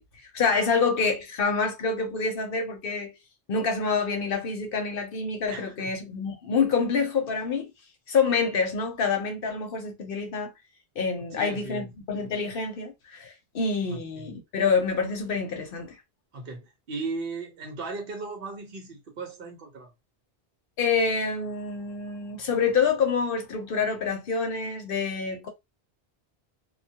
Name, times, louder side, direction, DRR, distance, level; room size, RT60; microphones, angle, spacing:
voice 1, 0.0-3.1 3.5-7.7 8.1-10.5 11.0-16.0 20.8-25.5, left 5 dB, 65° left, 0.8 m, -27 dB
voice 2, 5.5-5.9 11.3-11.9 13.9-14.3 16.3-19.9, right 3 dB, 60° right, 0.9 m, -37 dB
2.2 x 2.1 x 2.7 m
omnidirectional pair, 1.1 m